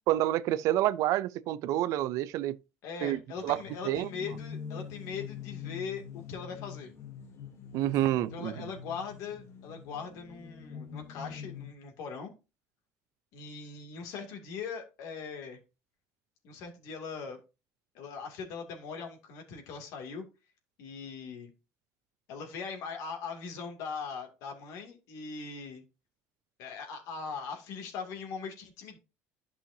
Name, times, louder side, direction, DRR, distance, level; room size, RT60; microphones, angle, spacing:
voice 1, 0.1-2.6 3.0-3.6 3.8-4.1 7.7-8.5, right 14 dB, 65° right, 0.5 m, -28 dB
voice 2, 2.8-6.9 8.3-12.3 13.3-15.6 16.4-17.4 17.9-20.2 20.8-21.5 22.3-25.8 26.6-29.0, left 5 dB, 70° left, 2.5 m, -40 dB
sound 1, 3.4-11.7, left 7 dB, 45° left, 1.2 m, -44 dB
11.5 x 5.6 x 2.7 m
cardioid pair, 140°, 6 cm